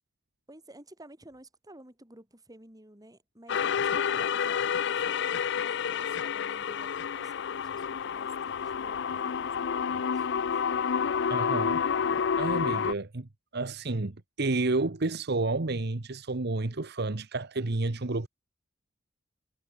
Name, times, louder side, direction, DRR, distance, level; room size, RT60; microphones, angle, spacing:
voice 1, 0.5-10.5, right 1 dB, 20° right, 4.3 m, -53 dB
sound 1, 3.5-12.9, left 7 dB, 65° left, 0.5 m, -29 dB
voice 2, 11.3-11.8 12.4-18.3, right 2 dB, 60° right, 1.2 m, -30 dB
head